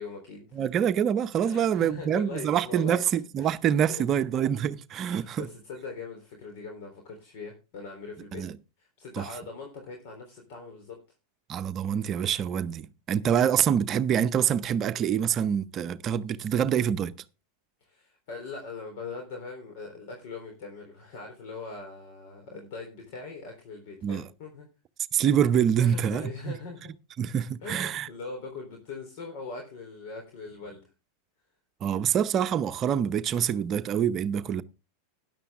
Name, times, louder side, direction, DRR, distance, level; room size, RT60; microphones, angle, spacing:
voice 1, 0.0-0.6 1.4-3.0 3.4-4.0 5.0-8.4 8.8-11.0 17.8-24.7 25.8-26.8 27.6-30.8, left 4 dB, 60° left, 3.7 m, -41 dB
voice 2, 0.5-5.5 8.3-8.6 9.1-9.2 11.5-17.1 24.0-24.3 25.1-26.6 27.2-28.1 31.8-34.6, right 9 dB, 35° right, 0.7 m, -26 dB
13.0 x 10.5 x 3.6 m
hypercardioid pair, 105°, 0 cm